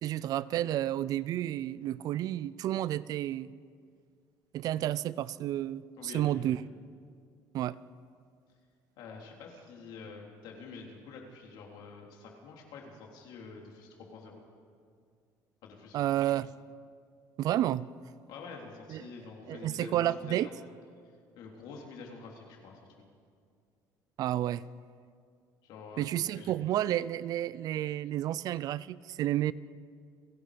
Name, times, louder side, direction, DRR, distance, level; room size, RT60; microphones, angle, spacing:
voice 1, 0.0-3.5 4.5-6.6 7.5-7.8 15.9-16.5 17.4-17.9 18.9-19.0 19.5-20.5 24.2-24.7 26.0-29.5, right 13 dB, 55° right, 0.5 m, -31 dB
voice 2, 6.0-6.6 9.0-14.4 15.6-16.2 18.3-20.5 21.3-22.8 25.6-26.5, left 4 dB, 75° left, 3.7 m, -47 dB
30.0 x 17.5 x 5.2 m
cardioid pair, 130°, 7 cm